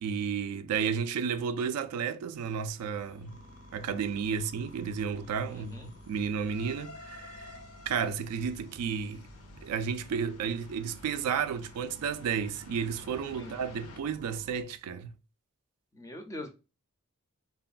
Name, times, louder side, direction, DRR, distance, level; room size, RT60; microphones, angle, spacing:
voice 1, 0.0-3.3 3.7-7.5 7.9-9.2 9.6-15.2, right 6 dB, 90° right, 0.3 m, -32 dB
sound 1, 2.3-14.0, left 3 dB, 80° left, 0.5 m, -53 dB
sound 2, 3.3-14.6, equal, 35° right, 0.5 m, -53 dB
voice 2, 5.5-5.9 13.4-13.5 15.9-16.5, left 1 dB, 15° left, 0.4 m, -42 dB
3.3 x 2.2 x 2.3 m
head